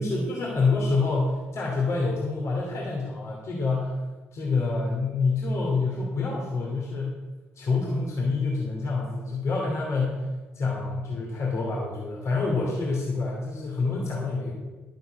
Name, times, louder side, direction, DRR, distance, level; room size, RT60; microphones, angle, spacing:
voice 1, 0.0-4.0 4.3-7.2 7.6-10.3 10.5-14.5, left 3 dB, 50° left, -3 dB, 2.6 m, -27 dB
11.5 x 9.3 x 5.2 m, 1.2 s
figure-of-eight pair, 50°, 6 cm